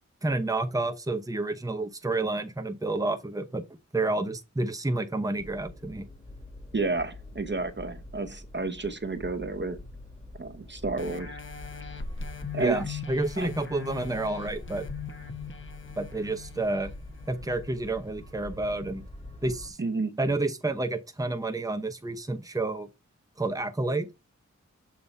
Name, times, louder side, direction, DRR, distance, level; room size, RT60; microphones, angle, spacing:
voice 1, 0.2-3.6 3.9-6.0 12.6-14.9 16.0-16.9 17.3-19.0 19.4-19.8 20.2-22.9 23.4-24.1, right 2 dB, 10° right, 0.9 m, -29 dB
sound 1, 5.4-19.7, left 2 dB, 20° left, 1.8 m, -46 dB
voice 2, 6.7-9.8 10.4-11.4 12.5-13.0 13.4-13.5 19.8-20.2, right 3 dB, 35° right, 0.9 m, -31 dB
sound 2, 11.0-18.2 18.7-18.8, left 5 dB, 40° left, 1.0 m, -40 dB
7.2 x 2.8 x 5.3 m
wide cardioid pair, 50°, 30 cm